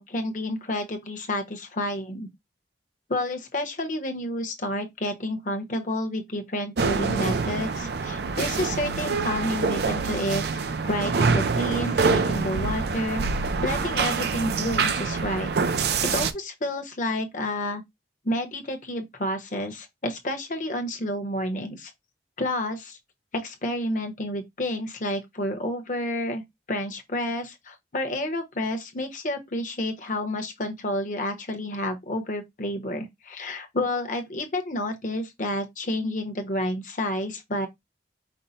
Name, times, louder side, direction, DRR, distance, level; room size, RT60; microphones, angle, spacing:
voice 1, 0.0-2.3 3.1-13.2 13.6-15.5 16.0-17.8 18.2-21.9 22.4-23.0 23.3-26.4 26.7-37.7, left 1 dB, 45° left, 0.9 m, -30 dB
sound 1, 6.8-16.3, right 4 dB, 60° right, 0.5 m, -25 dB
5.4 x 2.1 x 4.1 m
head